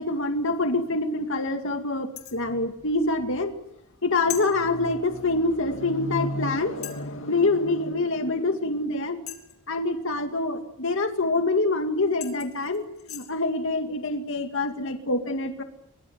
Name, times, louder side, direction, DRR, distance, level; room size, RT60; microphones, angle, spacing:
voice 1, 0.0-3.5 4.0-9.3 9.7-15.6, left 2 dB, 65° left, 6 dB, 2.2 m, -26 dB
sound 1, 2.2-2.5 4.3-4.5 5.9-6.0 6.8-7.1 9.3-9.7 11.7-11.8 12.2-13.3, left 12 dB, 85° left, 3.9 m, -38 dB
23.5 x 23.0 x 7.9 m, 0.77 s
head